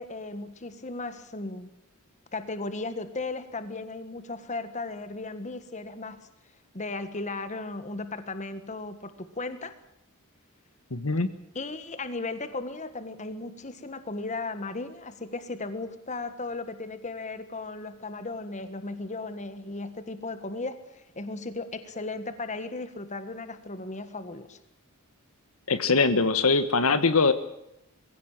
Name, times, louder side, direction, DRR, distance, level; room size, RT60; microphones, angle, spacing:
voice 1, 0.0-1.7 2.3-6.3 6.7-9.8 11.6-24.6, left 3 dB, 35° left, 11 dB, 1.6 m, -36 dB
voice 2, 10.9-11.3 25.7-27.3, left 4 dB, 75° left, 11 dB, 1.4 m, -22 dB
22.5 x 16.0 x 9.0 m, 0.82 s
head